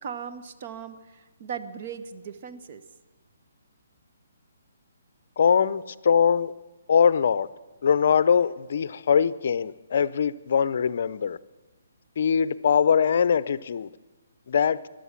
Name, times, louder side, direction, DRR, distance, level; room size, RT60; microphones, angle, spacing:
voice 1, 0.0-2.8, right 7 dB, 45° right, 1.0 m, -38 dB
voice 2, 5.4-6.5 6.9-7.5 7.8-11.4 12.2-13.9 14.5-14.8, left 7 dB, 55° left, 0.5 m, -22 dB
14.0 x 11.5 x 7.4 m
figure-of-eight pair, 140°, 0 cm